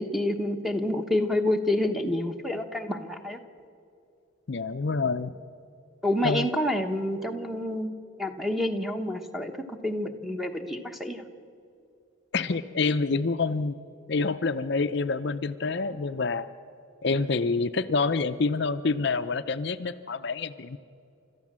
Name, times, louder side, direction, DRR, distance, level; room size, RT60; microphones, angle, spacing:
voice 1, 0.0-3.4 6.0-7.9 8.2-11.2, left 1 dB, ahead, 6 dB, 1.1 m, -28 dB
voice 2, 4.5-5.3 6.2-6.5 12.3-13.7 14.1-16.5 17.0-20.8, left 4 dB, 55° left, 10 dB, 0.6 m, -27 dB
30.0 x 13.5 x 7.4 m, 2.5 s
head